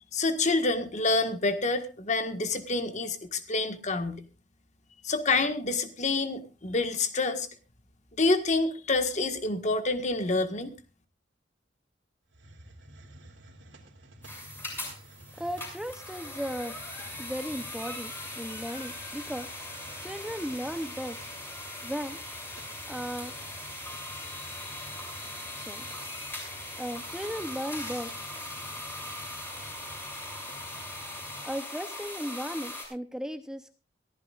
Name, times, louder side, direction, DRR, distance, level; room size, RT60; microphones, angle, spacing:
voice 1, 0.1-4.2 5.0-7.5 8.2-10.7, left 3 dB, 40° left, 8 dB, 1.6 m, -27 dB
Hiss, 12.3-31.5, right 1 dB, 85° right, 2.9 m, -51 dB
sound 1, 14.2-32.8, left 2 dB, 15° left, 6.7 m, -40 dB
voice 2, 15.4-16.8 17.2-19.5 20.0-21.2 21.8-22.2 22.9-23.3 25.6-25.9 26.8-28.1 31.4-33.8, equal, 5° right, 8 dB, 0.8 m, -36 dB
23.0 x 15.0 x 2.5 m, 0.31 s
head